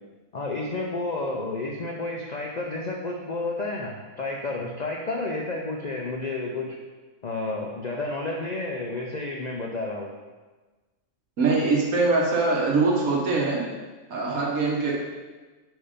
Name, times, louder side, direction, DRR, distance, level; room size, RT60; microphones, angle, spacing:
voice 1, 0.3-6.8 7.2-10.1, left 2 dB, 50° left, -1 dB, 0.5 m, -31 dB
voice 2, 11.4-13.6 14.1-14.9, right 3 dB, 90° right, -3 dB, 1.8 m, -23 dB
5.5 x 4.5 x 5.0 m, 1.3 s
omnidirectional pair, 1.4 m